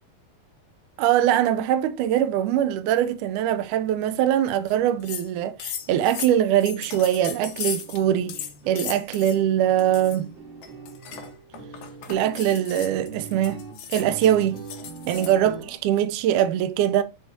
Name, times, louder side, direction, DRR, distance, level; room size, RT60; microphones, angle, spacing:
voice 1, 1.0-10.3 12.1-13.6 13.9-14.7 15.1-17.0, right 11 dB, 80° right, 1.9 m, -22 dB
sound 1, 4.7-4.8 5.0-5.3 5.6-8.0 8.3-9.4 9.8-10.2 10.6-15.4, left 9 dB, 70° left, 2.2 m, -36 dB
sound 2, 5.8-5.9 6.2-6.4 6.7-15.8, right 5 dB, 45° right, 1.9 m, -42 dB
6.3 x 4.5 x 3.9 m
omnidirectional pair, 4.0 m